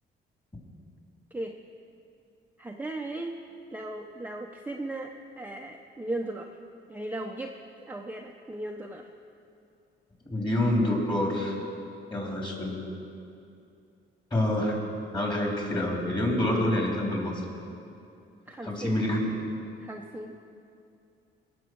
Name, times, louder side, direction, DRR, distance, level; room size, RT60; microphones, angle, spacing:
voice 1, 2.6-3.4 3.7-6.5 6.9-7.6 7.8-9.1 18.5-19.0 19.8-20.4, right 1 dB, 10° right, 1 dB, 0.8 m, -37 dB
voice 2, 10.3-11.5 12.1-12.7 14.3-14.8 15.1-17.4 18.6-19.4, left 1 dB, 25° left, -2 dB, 4.0 m, -27 dB
20.0 x 6.9 x 6.3 m, 2.6 s
cardioid pair, 90°, 20 cm